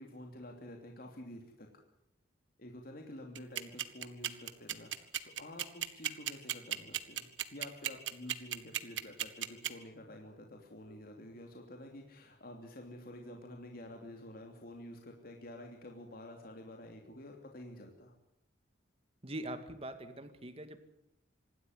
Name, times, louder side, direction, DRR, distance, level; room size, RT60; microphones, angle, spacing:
voice 1, 0.0-1.7 2.6-18.1, left 1 dB, 50° left, 2 dB, 3.0 m, -49 dB
sound 1, 3.3-9.7, right 11 dB, 80° right, 1.5 m, -34 dB
voice 2, 19.2-20.8, right 1 dB, 30° right, 9 dB, 2.1 m, -42 dB
26.0 x 12.5 x 9.7 m, 0.79 s
head